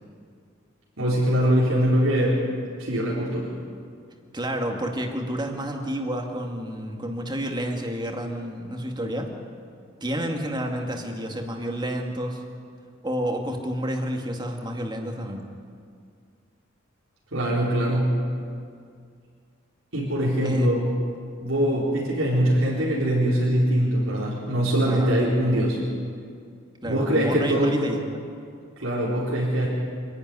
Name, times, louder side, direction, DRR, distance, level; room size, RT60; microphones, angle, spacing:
voice 1, 1.0-2.4 2.8-3.5 17.3-18.2 19.9-20.9 21.4-25.8 26.8-27.7 28.8-29.7, equal, 85° right, -7 dB, 4.2 m, -22 dB
voice 2, 4.3-9.3 10.0-12.4 13.0-15.5 20.4-20.7 24.9-25.1 26.8-28.2, equal, 20° right, 2 dB, 2.2 m, -30 dB
25.5 x 11.0 x 9.8 m, 2.2 s
head